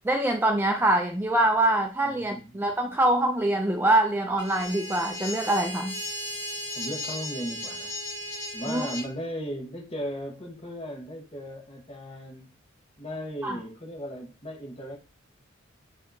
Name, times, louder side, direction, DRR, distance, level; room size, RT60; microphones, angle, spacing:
voice 1, 0.0-6.0 8.7-8.9 13.4-13.6, right 1 dB, 10° right, 4 dB, 0.3 m, -24 dB
voice 2, 2.0-2.7 6.7-7.9 8.5-12.5 13.0-15.0, equal, 30° left, 1 dB, 1.2 m, -36 dB
sound 1, 4.4-9.1, left 1 dB, 10° left, 1.4 m, -36 dB
7.1 x 2.8 x 2.7 m, 0.31 s
head